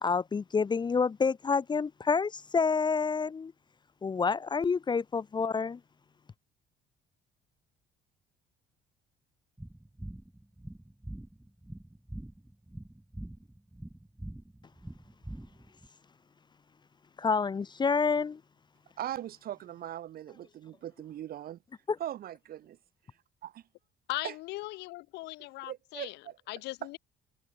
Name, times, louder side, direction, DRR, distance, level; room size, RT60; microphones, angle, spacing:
voice 1, 0.0-3.5 4.0-5.8 17.2-18.4, left 5 dB, 25° left, 0.9 m, -28 dB
sound 1, 9.6-15.9, right 1 dB, 5° right, 1.8 m, -44 dB
voice 2, 19.0-21.6 22.0-22.8 23.4-23.6 24.2-24.3 25.7-26.4, right 12 dB, 60° right, 4.4 m, -40 dB
voice 3, 24.1-26.2 26.5-27.0, left 20 dB, 90° left, 2.7 m, -38 dB
cardioid pair, 110°, 17 cm